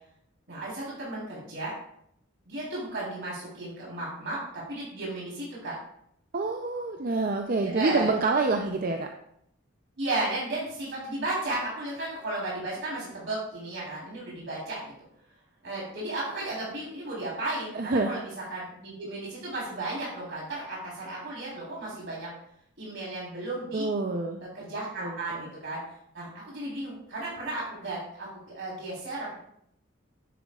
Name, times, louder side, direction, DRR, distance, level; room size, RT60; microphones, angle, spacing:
voice 1, 0.5-1.7 2.5-5.8 7.6-8.1 10.0-14.9 15.6-22.3 22.8-23.9 24.5-25.8 26.1-29.4, right 2 dB, 60° right, -6 dB, 3.7 m, -34 dB
voice 2, 6.3-9.1 17.7-18.2 23.7-24.4 25.0-25.5, right 3 dB, 45° right, 3 dB, 0.5 m, -27 dB
10.0 x 7.7 x 2.4 m, 0.72 s
head